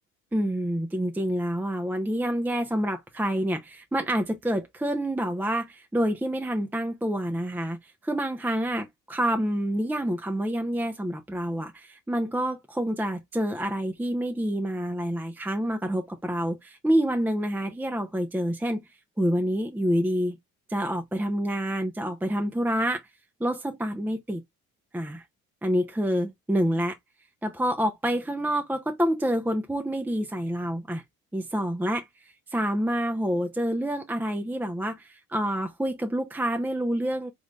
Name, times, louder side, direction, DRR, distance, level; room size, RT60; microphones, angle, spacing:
voice 1, 0.3-18.8 19.2-20.4 20.7-23.1 23.4-24.4 24.9-25.3 25.6-26.9 27.4-31.0 31.3-37.3, equal, 5° right, 0.6 m, -27 dB
5.3 x 3.0 x 2.3 m
figure-of-eight pair, 50°, 43 cm